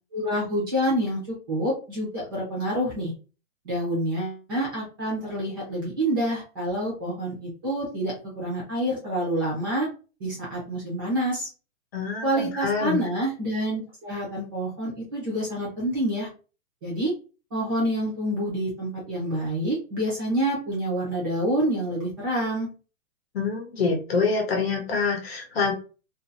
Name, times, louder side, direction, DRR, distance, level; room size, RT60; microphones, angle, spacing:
voice 1, 0.1-3.1 3.6-9.9 10.2-11.5 12.2-16.3 16.8-17.1 17.5-22.7, right 1 dB, 15° right, -5 dB, 0.7 m, -27 dB
voice 2, 11.9-13.0 23.3-25.7, left 4 dB, 50° left, 2 dB, 0.9 m, -26 dB
2.6 x 2.6 x 2.6 m, 0.34 s
hypercardioid pair, 175°, 40 cm